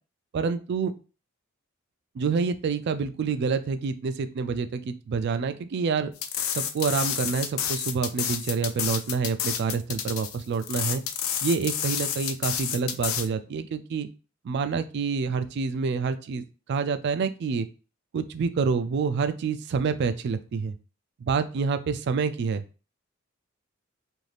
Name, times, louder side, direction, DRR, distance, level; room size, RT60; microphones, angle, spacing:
voice 1, 0.3-0.9 2.2-6.1 6.5-11.0 11.4-14.1 14.4-16.4 16.7-17.7 18.1-20.8 21.2-22.6, right 5 dB, 55° right, 10 dB, 0.3 m, -27 dB
sound 1, 6.2-13.3, left 8 dB, 85° left, 0.4 m, -30 dB
2.6 x 2.4 x 3.2 m, 0.34 s
head